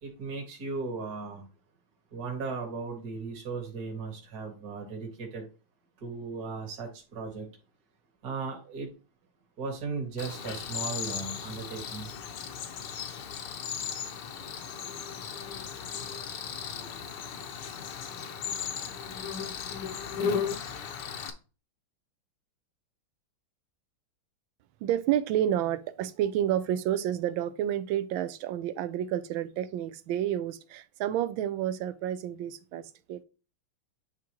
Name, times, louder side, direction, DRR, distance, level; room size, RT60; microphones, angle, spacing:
voice 1, 0.0-1.5 2.1-5.5 6.0-7.5 8.2-8.9 9.6-12.1, right 4 dB, 50° right, 2.0 m, -36 dB
Cricket, 10.2-21.3, left 7 dB, 65° left, 1.4 m, -36 dB
voice 2, 24.8-33.2, right 11 dB, 80° right, 1.4 m, -30 dB
9.8 x 3.7 x 3.0 m
omnidirectional pair, 2.2 m